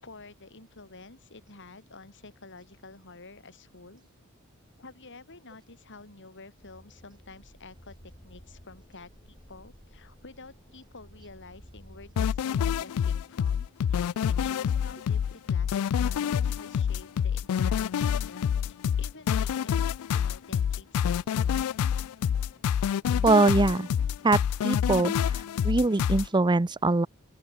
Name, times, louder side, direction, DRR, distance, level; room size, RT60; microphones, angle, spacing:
voice 1, 0.0-4.1 4.8-19.9 20.1-21.4, left 3 dB, 55° left, 3.8 m, -49 dB
sound 1, 6.6-12.5, equal, 25° left, 7.1 m, -54 dB
sound 2, 12.2-26.3, left 8 dB, 85° left, 0.3 m, -27 dB
voice 2, 23.2-23.9 24.2-25.1 25.6-27.1, right 3 dB, 20° right, 0.5 m, -22 dB
open air
head